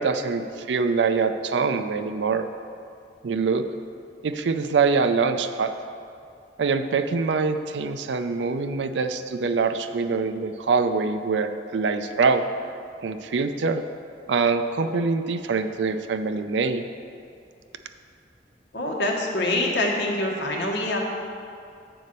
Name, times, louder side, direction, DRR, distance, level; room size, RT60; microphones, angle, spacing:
voice 1, 0.0-2.5 3.2-3.6 4.2-5.7 6.6-12.4 13.0-13.8 14.3-16.9, right 4 dB, 80° right, 8 dB, 0.4 m, -24 dB
voice 2, 18.7-21.0, left 1 dB, 70° left, -1 dB, 1.2 m, -25 dB
7.8 x 4.2 x 6.6 m, 2.5 s
head